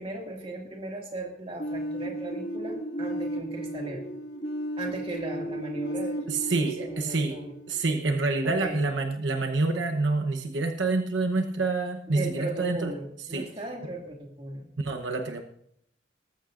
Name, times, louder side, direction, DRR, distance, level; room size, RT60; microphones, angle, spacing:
voice 1, 0.0-4.1 4.8-7.5 8.4-8.8 12.1-14.7, right 2 dB, 30° right, 0 dB, 2.2 m, -37 dB
sound 1, 1.6-8.4, right 1 dB, 65° left, 2.0 m, -34 dB
voice 2, 6.3-7.4 7.7-12.9 13.3-13.5 14.8-15.4, right 3 dB, 85° right, 4 dB, 1.0 m, -27 dB
19.0 x 14.0 x 2.6 m, 0.70 s
head